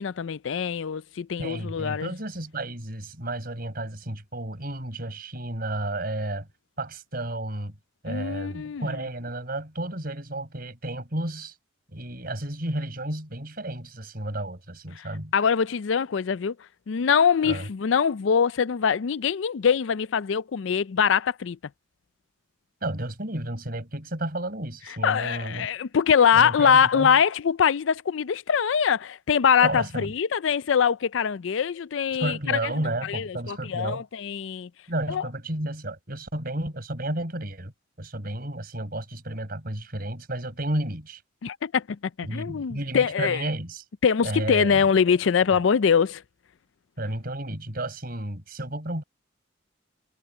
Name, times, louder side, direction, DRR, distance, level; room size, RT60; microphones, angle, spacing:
voice 1, 0.0-2.1 8.1-9.0 15.0-15.1 15.3-16.6 16.9-21.6 25.0-32.7 33.0-34.7 35.1-35.3 41.4-43.5 44.0-46.2, left 7 dB, 70° left, 0.4 m, -23 dB
voice 2, 1.4-6.5 6.8-7.7 8.0-11.5 11.9-15.3 17.4-17.7 22.8-25.7 26.3-27.2 29.6-30.1 32.2-34.0 34.9-37.7 38.0-41.2 42.2-43.8 44.2-44.8 45.5-45.6 47.0-49.0, right 1 dB, 45° right, 5.2 m, -32 dB
head